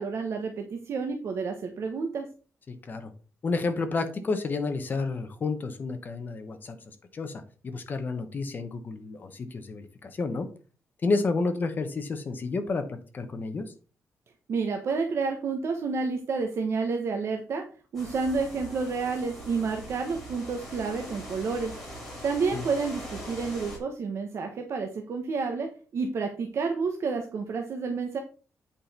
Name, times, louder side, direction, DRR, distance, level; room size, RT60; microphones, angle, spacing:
voice 1, 0.0-2.3 14.5-17.6 17.9-21.7 22.2-28.2, right 4 dB, 55° right, 4 dB, 1.2 m, -30 dB
voice 2, 2.7-3.1 3.4-10.5 11.0-13.7 22.5-22.6, left 3 dB, 35° left, 8 dB, 1.2 m, -31 dB
sound 1, 17.9-23.8, equal, 5° left, 4.8 m, -42 dB
8.7 x 5.2 x 4.3 m, 0.37 s
wide cardioid pair, 160°, 6 cm